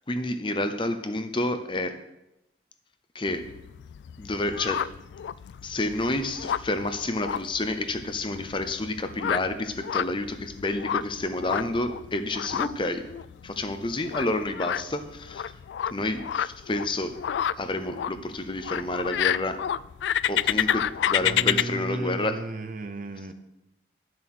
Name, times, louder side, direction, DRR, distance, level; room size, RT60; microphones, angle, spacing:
voice 1, 0.1-2.0 3.1-3.5 4.2-4.9 5.6-13.1 13.4-15.5 15.9-17.2 17.6-19.6 20.3-22.4, left 2 dB, 30° left, 0.7 m, -29 dB
sound 1, 3.3-21.6, left 10 dB, 85° left, 0.3 m, -30 dB
voice 2, 21.2-23.3, right 2 dB, 45° right, 0.8 m, -34 dB
10.5 x 7.6 x 6.1 m
head